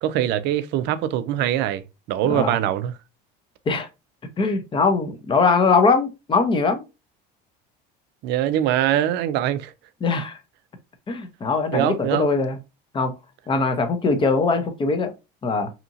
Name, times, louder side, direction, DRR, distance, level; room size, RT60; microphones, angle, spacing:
voice 1, 0.0-3.0 8.2-9.7 11.7-12.3, right 11 dB, 60° right, 0.4 m, -23 dB
voice 2, 2.3-2.6 3.7-3.9 4.4-6.8 10.0-10.4 11.1-12.6 12.9-13.1 13.5-15.1 15.4-15.7, left 4 dB, 25° left, 0.6 m, -21 dB
2.8 x 2.6 x 2.5 m
cardioid pair, 120°, 20 cm